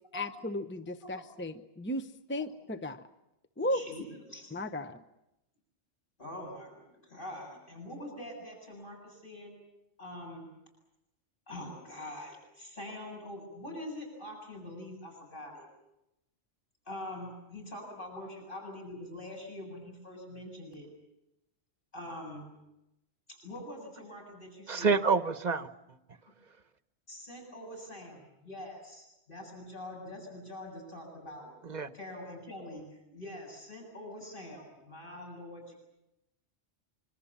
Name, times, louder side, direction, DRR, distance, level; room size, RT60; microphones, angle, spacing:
voice 1, 0.1-3.0 3.6-3.8 4.5-5.0, left 1 dB, 10° left, 9 dB, 0.8 m, -35 dB
voice 2, 3.6-4.6 6.2-9.5 10.0-10.5 11.5-15.7 16.9-20.9 21.9-22.5 23.3-25.0 27.1-31.5 31.9-35.7, left 1 dB, 50° left, 0 dB, 7.7 m, -44 dB
voice 3, 24.7-25.7 31.6-31.9, right 5 dB, 40° right, 11 dB, 1.2 m, -27 dB
25.5 x 24.5 x 7.3 m, 0.88 s
omnidirectional pair, 1.2 m